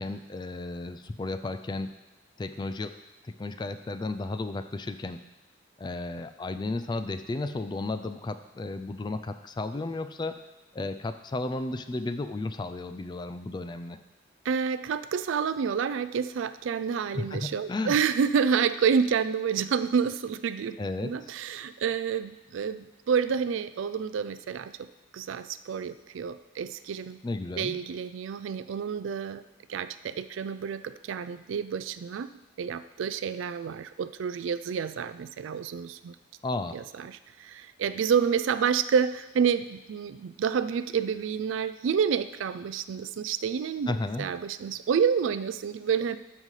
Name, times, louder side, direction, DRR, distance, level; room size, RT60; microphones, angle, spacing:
voice 1, 0.0-1.9 2.4-2.9 3.2-5.2 5.8-10.4 10.7-14.0 17.1-18.0 20.8-21.3 27.2-27.8 36.4-36.8 43.9-44.3, left 2 dB, 20° left, 10 dB, 0.3 m, -33 dB
voice 2, 14.4-20.8 21.0-24.9 25.1-27.2 27.6-29.4 29.7-32.3 32.6-36.1 36.7-43.9 44.2-46.2, right 6 dB, 80° right, 13 dB, 0.3 m, -29 dB
13.0 x 5.3 x 3.2 m, 1.0 s
head